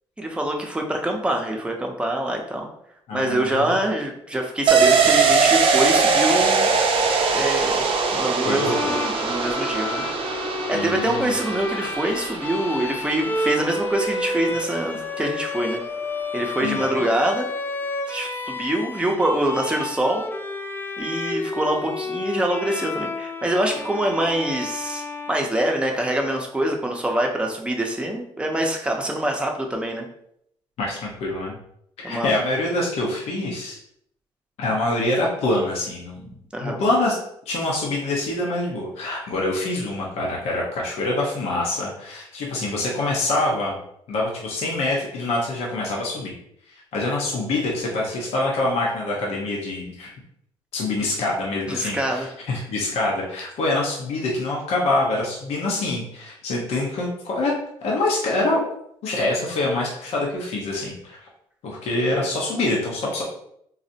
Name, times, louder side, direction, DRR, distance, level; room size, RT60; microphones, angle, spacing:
voice 1, 0.2-2.7 3.1-6.7 7.3-7.8 8.1-10.0 10.7-15.8 16.3-17.5 18.1-20.2 21.0-30.1 32.0-32.3 36.5-36.8 51.0-51.1 51.7-52.3, right 1 dB, 10° right, 1 dB, 0.7 m, -25 dB
voice 2, 3.1-3.7 8.4-8.9 10.7-11.3 16.6-16.9 30.8-31.5 32.0-33.8 34.6-36.3 36.6-37.2 37.5-43.8 44.1-46.3 46.7-50.1 50.7-57.5 57.8-58.6 59.0-61.2 61.6-63.2, left 2 dB, 75° left, -3 dB, 0.8 m, -25 dB
sound 1, 4.7-14.1 14.4-14.5, right 5 dB, 55° right, 0.5 m, -21 dB
Bowed string instrument, 8.6-26.1, left 2 dB, 20° left, 0.4 m, -31 dB
4.0 x 2.0 x 2.7 m, 0.71 s
cardioid pair, 75°, 11 cm